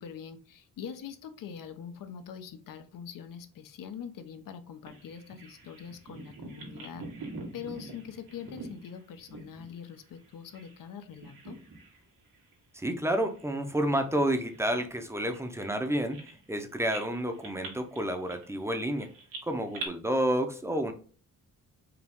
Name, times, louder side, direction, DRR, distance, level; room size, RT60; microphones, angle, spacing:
voice 1, 0.0-7.1 7.5-11.6, left 7 dB, 75° left, 0.8 m, -43 dB
Bird vocalization bird call bird song, 4.9-10.8 11.1-12.0 12.3-12.5 13.1-16.6 16.9-19.9, right 3 dB, 90° right, 1.8 m, -45 dB
voice 2, 12.7-19.1 19.4-20.9, right 1 dB, 10° right, 0.6 m, -30 dB
4.9 x 3.0 x 3.5 m
wide cardioid pair, 145°, 33 cm